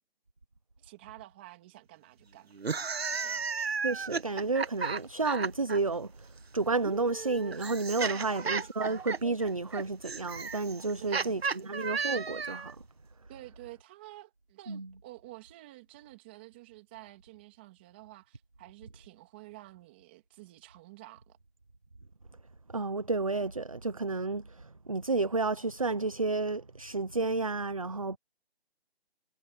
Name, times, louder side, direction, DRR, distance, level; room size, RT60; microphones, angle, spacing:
voice 1, 0.8-2.5 3.1-3.5 8.0-8.7 11.0-11.9 13.3-21.4, right 18 dB, 10° right, 2.9 m, -50 dB
sound 1, 2.5-5.8 6.8-12.7, right 5 dB, 70° right, 1.2 m, -34 dB
voice 2, 3.8-6.3 6.5-12.8 14.7-14.9 22.7-28.2, right 3 dB, 30° right, 0.8 m, -31 dB
hypercardioid pair, 175°, 32 cm